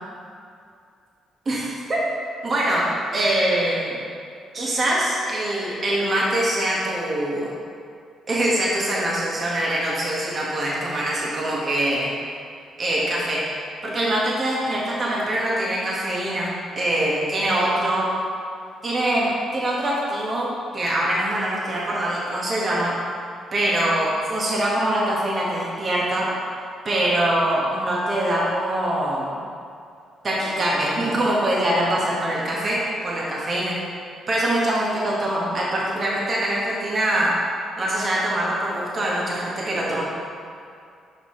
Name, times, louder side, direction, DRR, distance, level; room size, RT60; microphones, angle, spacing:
voice 1, 1.4-2.0 2.4-4.0 4.5-7.5 8.3-12.1 12.8-13.4 13.8-18.1 18.8-22.9 23.5-26.3 26.8-29.4 30.2-33.7 34.3-37.3 37.8-40.0, right 1 dB, 40° right, -5 dB, 1.4 m, -23 dB
7.2 x 5.5 x 3.1 m, 2.4 s
cardioid pair, 90°, 0 cm